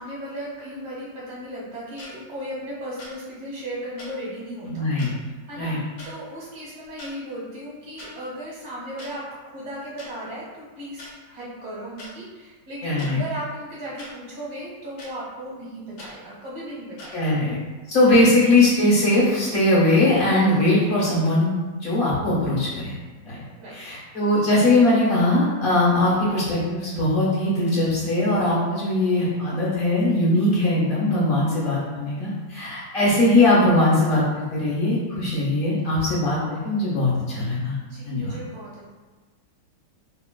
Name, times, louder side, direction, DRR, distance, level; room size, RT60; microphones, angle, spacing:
voice 1, 0.0-4.7 5.4-5.8 6.0-17.3 23.6-24.0 37.8-38.9, equal, 50° right, -8 dB, 1.1 m, -36 dB
sound 1, 2.0-2.1 3.0-3.1 4.0-4.1 5.0-5.1 6.0-6.1 6.8-7.1 8.0-8.1 9.0-9.1 10.0-10.1 11.0-11.1 12.0-12.1 13.0-13.1 14.0-14.1 15.0-15.1 16.0-16.1 17.0-17.1, left 1 dB, 70° left, 1.4 m, -41 dB
voice 2, 4.7-5.1 5.6-5.8 12.8-13.2 17.1-17.6 17.9-21.5 21.8-23.0 23.2-23.4 23.7-37.8 38.0-38.4, left 1 dB, 40° left, -8 dB, 0.8 m, -20 dB
3.7 x 2.4 x 2.2 m, 1.3 s
omnidirectional pair, 1.9 m